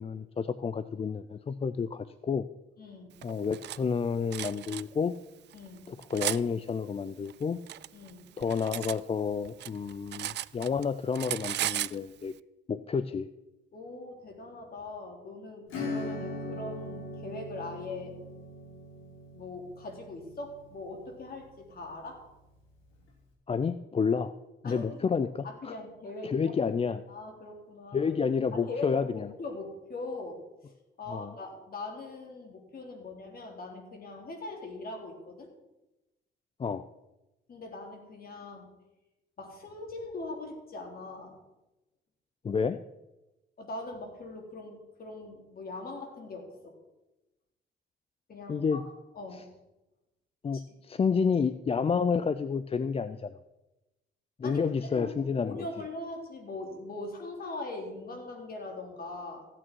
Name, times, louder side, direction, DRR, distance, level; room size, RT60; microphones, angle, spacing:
voice 1, 0.0-2.4 3.2-5.1 5.9-7.6 8.4-12.3 12.7-13.3 23.5-24.3 24.6-25.8 26.2-27.0 27.9-29.3 31.1-31.3 36.6-36.8 42.4-42.8 48.5-48.8 49.3-49.4 50.4-53.3 54.4-55.6, left 6 dB, 30° left, 13 dB, 0.5 m, -30 dB
voice 2, 2.8-3.2 5.5-6.0 7.9-8.3 13.7-18.1 19.3-22.2 24.6-25.1 25.4-26.5 27.1-28.1 28.5-30.4 31.0-35.5 37.5-38.7 39.4-41.4 43.6-46.8 48.3-48.9 49.2-49.5 50.5-50.6 54.4-54.6 54.9-55.1 55.4-59.5, left 2 dB, 50° left, 2 dB, 3.5 m, -41 dB
Cutlery silverware, 3.2-3.8 4.3-4.8 5.5-6.4 7.3-9.0 9.3-10.9 11.1-12.0, right 14 dB, 60° right, 0.4 m, -35 dB
Acoustic guitar / Strum, 15.7-21.9, left 2 dB, 85° left, 3.8 m, -40 dB
15.0 x 8.9 x 4.6 m, 1.0 s
cardioid pair, 90°, 20 cm